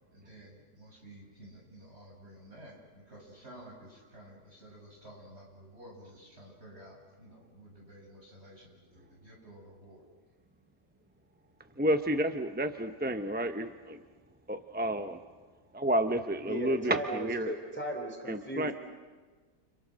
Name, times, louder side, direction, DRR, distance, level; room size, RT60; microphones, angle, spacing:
voice 1, 0.1-10.1, right 1 dB, 40° right, -2 dB, 8.2 m, -52 dB
voice 2, 11.8-14.0 14.5-15.2 15.7-17.5 18.3-18.7, right 1 dB, 10° right, 7 dB, 0.6 m, -30 dB
voice 3, 16.4-18.7, right 1 dB, 5° left, 2 dB, 3.2 m, -36 dB
30.0 x 30.0 x 6.4 m, 1.4 s
omnidirectional pair, 1.8 m